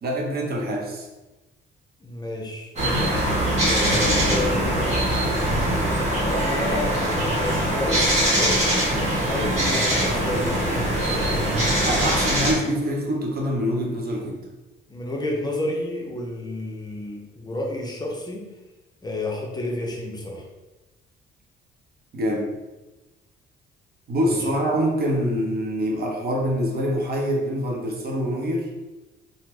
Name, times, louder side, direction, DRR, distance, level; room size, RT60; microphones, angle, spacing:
voice 1, 0.0-1.1 11.9-14.4 22.1-22.5 24.1-28.7, equal, 50° right, -1 dB, 0.7 m, -25 dB
voice 2, 2.0-2.7 3.6-4.6 6.2-8.6 9.3-10.7 14.9-18.4 19.0-20.5 24.2-24.6, left 1 dB, 20° left, -1 dB, 0.6 m, -30 dB
sound 1, 2.8-12.5, right 1 dB, 35° right, 1.1 m, -22 dB
3.4 x 2.1 x 3.0 m, 1.1 s
cardioid pair, 90°, 20 cm